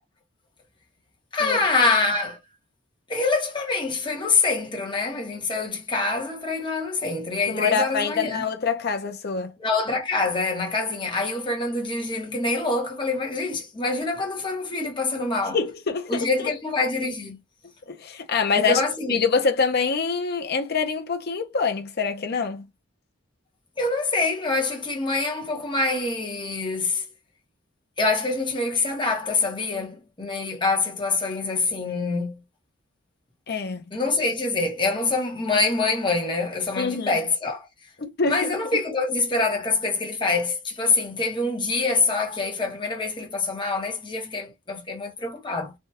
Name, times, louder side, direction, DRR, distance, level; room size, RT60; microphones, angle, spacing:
voice 1, 1.3-2.4 3.1-8.4 9.6-15.6 16.1-17.4 18.5-19.1 23.8-27.0 28.0-32.4 33.9-37.7 38.2-45.7, left 3 dB, 25° left, 1.0 m, -25 dB
voice 2, 7.5-9.5 15.5-16.5 17.9-18.8 19.1-22.7 33.5-33.9 36.8-37.2 38.0-38.8, left 5 dB, 50° left, 0.6 m, -25 dB
3.4 x 2.3 x 2.8 m
head